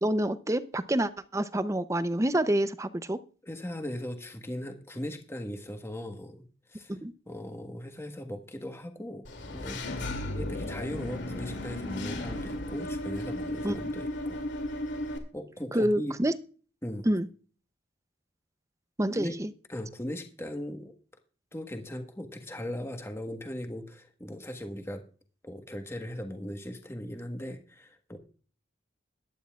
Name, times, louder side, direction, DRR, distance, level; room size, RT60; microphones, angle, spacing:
voice 1, 0.0-3.2 6.9-7.1 13.6-13.7 15.7-16.3 17.0-17.3 19.0-19.5, right 1 dB, 15° right, 12 dB, 0.6 m, -27 dB
voice 2, 3.4-6.9 7.3-9.8 10.3-14.5 15.3-16.1 16.8-17.1 19.2-19.4 19.7-20.9 21.5-25.0 25.4-28.2, left 1 dB, 15° left, 5 dB, 1.4 m, -38 dB
Engine / Mechanisms, 9.2-15.2, left 1 dB, 70° left, 2.6 m, -35 dB
21.5 x 9.8 x 2.4 m, 0.40 s
head